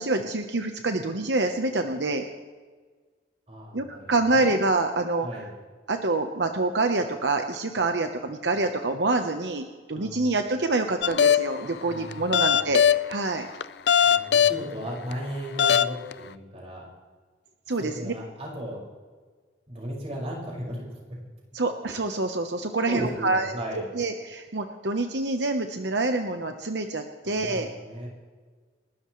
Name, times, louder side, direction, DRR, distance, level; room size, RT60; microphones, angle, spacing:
voice 1, 0.0-2.2 3.7-5.4 5.9-13.5 17.7-18.1 21.5-23.5 23.7-27.7, right 2 dB, 75° right, 5 dB, 1.0 m, -26 dB
voice 2, 3.5-4.6 5.2-5.5 9.9-10.4 11.9-12.8 14.0-16.8 17.8-18.8 19.7-20.9 22.6-23.8 27.2-28.1, equal, 35° right, -3 dB, 5.7 m, -36 dB
sound 1, 11.0-11.6 12.1-13.1 13.6-14.6 15.1-15.2 15.6-16.1, left 8 dB, 65° left, 0.4 m, -20 dB
29.5 x 13.0 x 3.2 m, 1.5 s
head